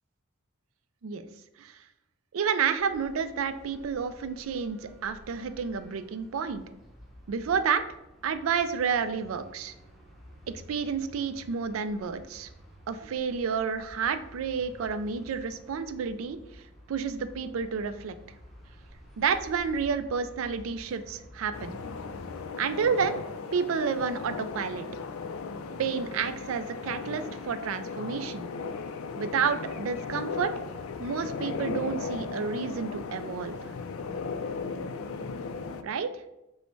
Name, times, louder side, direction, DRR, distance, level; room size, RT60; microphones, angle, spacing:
voice 1, 2.3-6.6 7.3-7.8 8.2-9.7 10.7-12.5 12.9-16.4 16.9-18.1 19.2-21.8 22.6-23.1 23.5-24.9 25.8-28.5 29.2-30.5 31.0-33.6 35.8-36.1, right 6 dB, 70° right, 11 dB, 0.4 m, -30 dB
sound 1, 2.8-22.5, equal, ahead, 0.8 m, -51 dB
sound 2, 21.5-35.8, left 4 dB, 75° left, 0.4 m, -37 dB
5.3 x 2.1 x 4.5 m, 0.91 s
head